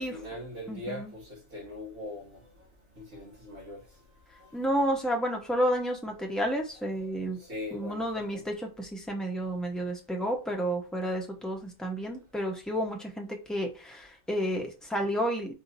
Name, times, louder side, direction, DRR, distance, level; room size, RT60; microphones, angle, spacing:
voice 1, 0.0-2.4 3.0-3.8 4.3-4.5 6.8-8.4, left 1 dB, 85° right, 2.3 m, -41 dB
voice 2, 0.7-1.1 4.5-7.4 7.7-15.5, equal, ahead, 0.8 m, -31 dB
4.6 x 2.8 x 4.0 m
omnidirectional pair, 1.3 m